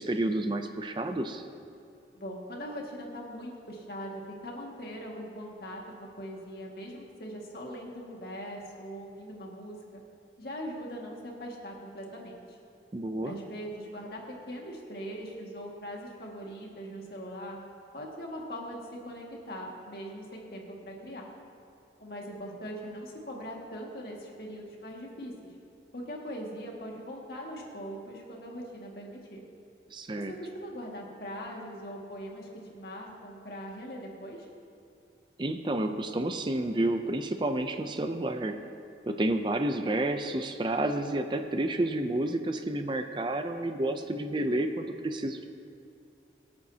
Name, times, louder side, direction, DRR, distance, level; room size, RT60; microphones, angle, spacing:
voice 1, 0.0-1.4 12.9-13.4 29.9-30.3 35.4-38.6 39.1-45.4, right 1 dB, 25° right, 7 dB, 0.5 m, -30 dB
voice 2, 2.1-10.0 10.4-12.6 13.2-17.6 17.9-18.8 19.0-21.2 22.0-25.3 25.9-29.4 30.2-34.5, equal, 60° left, -1 dB, 2.0 m, -41 dB
24.0 x 8.8 x 2.8 m, 2.5 s
head